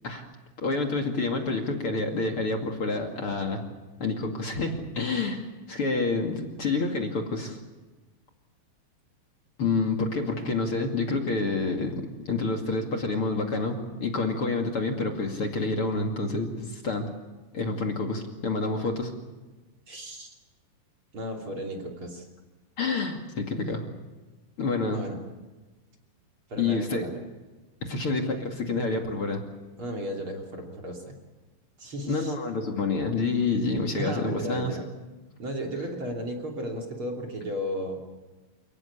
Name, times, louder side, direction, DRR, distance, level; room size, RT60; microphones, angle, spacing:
voice 1, 0.6-3.6 4.0-7.6 9.6-17.1 17.5-19.1 22.8-23.9 24.6-25.0 26.6-27.1 27.8-29.4 32.1-34.7, left 3 dB, 40° left, 3 dB, 2.3 m, -28 dB
voice 2, 19.9-20.3 21.1-22.3 24.9-25.2 26.5-27.1 29.8-31.2 31.8-32.3 33.9-34.8 35.4-38.0, equal, 30° right, 1 dB, 3.2 m, -34 dB
29.0 x 18.0 x 8.3 m, 1.2 s
omnidirectional pair, 5.4 m